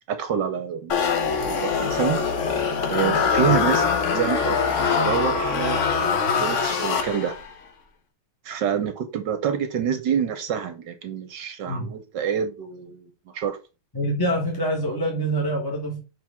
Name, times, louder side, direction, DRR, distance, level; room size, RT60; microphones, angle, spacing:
voice 1, 0.1-0.9 1.4-2.2 2.9-4.6 5.0-7.4 8.4-13.6, right 8 dB, 65° right, 1.2 m, -27 dB
sound 1, 0.9-7.5, left 5 dB, 55° left, 0.8 m, -23 dB
voice 2, 13.9-16.0, right 1 dB, 15° left, 1.0 m, -25 dB
5.9 x 4.6 x 3.5 m
omnidirectional pair, 2.3 m